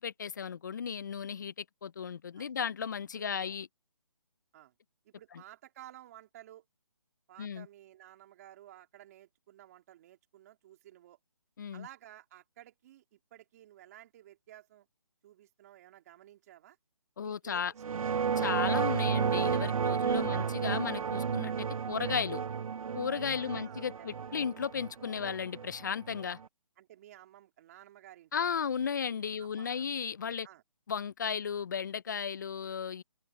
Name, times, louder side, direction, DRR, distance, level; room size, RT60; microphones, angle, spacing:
voice 1, 0.0-3.7 7.4-7.7 11.6-11.9 17.2-17.7 18.4-22.4 22.9-26.4 28.3-30.5 30.9-33.0, left 7 dB, 30° left, 0.5 m, -35 dB
voice 2, 3.1-3.6 4.5-4.7 5.0-6.7 7.3-11.2 11.7-14.9 15.2-16.8 17.2-18.3 20.3-20.5 23.4-24.1 26.8-28.5 29.4-29.9 30.4-30.6, right 13 dB, 25° right, 3.1 m, -54 dB
sound 1, 17.8-26.4, right 6 dB, 70° right, 0.5 m, -32 dB
open air
figure-of-eight pair, 160°, 18 cm